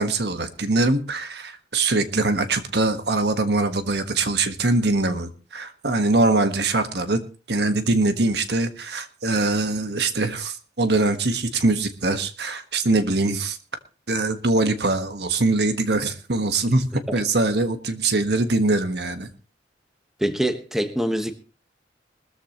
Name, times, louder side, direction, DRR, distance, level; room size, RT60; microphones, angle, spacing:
voice 1, 0.0-7.2 7.5-13.6 14.1-16.8 17.1-19.3, right 2 dB, 60° right, 1.5 m, -22 dB
voice 2, 20.2-21.3, right 1 dB, ahead, 1.3 m, -24 dB
20.5 x 14.0 x 3.0 m
head